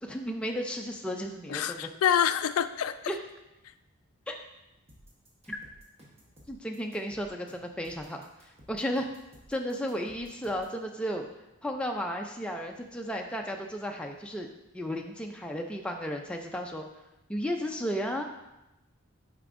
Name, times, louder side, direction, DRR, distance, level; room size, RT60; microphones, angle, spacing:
voice 1, 0.0-1.9 3.1-3.2 4.3-4.4 5.5-5.6 6.5-9.1 9.5-11.3 11.6-14.5 14.7-16.9 17.3-18.2, equal, 5° left, 2 dB, 0.4 m, -34 dB
voice 2, 1.5-2.9, left 9 dB, 85° left, 11 dB, 0.3 m, -26 dB
sound 1, 4.9-10.8, equal, 30° right, 1.0 m, -56 dB
7.9 x 4.9 x 2.5 m, 0.96 s
head